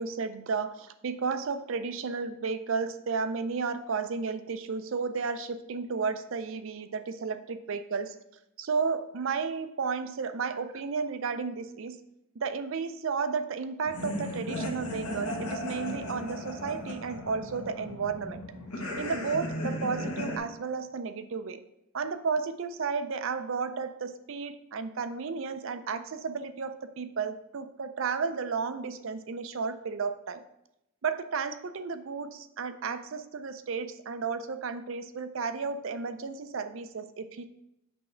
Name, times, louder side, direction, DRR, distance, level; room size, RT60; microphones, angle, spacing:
voice 1, 0.0-8.2 8.6-12.0 12.4-18.4 19.0-21.6 21.9-30.4 31.0-37.4, right 5 dB, 65° right, 11 dB, 0.5 m, -33 dB
sound 1, 13.9-20.4, left 1 dB, 85° left, 1.4 m, -36 dB
7.9 x 3.2 x 5.7 m, 0.85 s
head